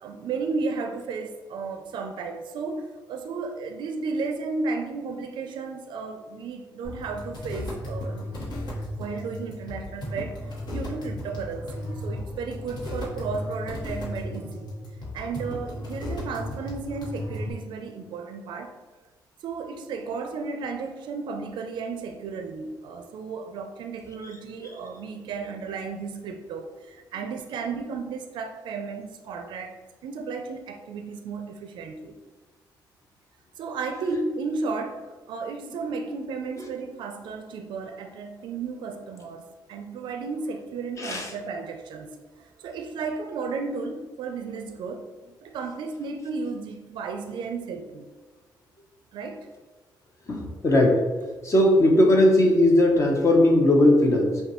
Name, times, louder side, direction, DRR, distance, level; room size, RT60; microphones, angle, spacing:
voice 1, 0.0-14.7 15.1-18.7 19.4-29.8 30.0-32.2 33.6-45.1 45.4-48.1 49.1-49.5, right 4 dB, 75° right, 5 dB, 0.4 m, -34 dB
sound 1, 6.8-17.5, left 1 dB, 65° left, 1.2 m, -35 dB
voice 2, 41.0-41.3 50.3-51.0 51.4-54.4, left 1 dB, 40° left, 1 dB, 0.7 m, -19 dB
5.3 x 2.3 x 2.9 m, 1.3 s
cardioid pair, 100°, 8 cm